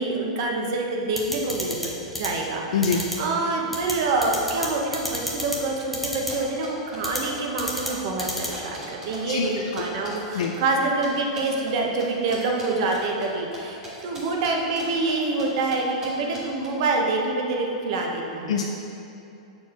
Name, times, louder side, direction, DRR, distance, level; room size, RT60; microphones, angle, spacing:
voice 1, 0.0-18.5, right 3 dB, 50° right, 0 dB, 0.9 m, -26 dB
sound 1, 1.2-1.9 2.1-2.3 2.8-3.1 3.7-3.9 4.2-4.7 4.9-5.6 5.9-6.3 7.0-7.2 7.6-7.9 8.2-8.5, left 1 dB, ahead, 0.8 m, -28 dB
voice 2, 2.7-3.0 9.3-9.5 10.3-10.5 18.5-18.6, left 6 dB, 85° left, 1 dB, 0.4 m, -23 dB
sound 2, 6.3-9.2 9.4-11.1 11.4-11.7 12.0-13.6 13.8-15.4 15.7-16.1 16.3-16.7, right 1 dB, 15° right, 1.5 m, -40 dB
7.3 x 4.5 x 4.3 m, 2.7 s
supercardioid pair, 165°, 3 cm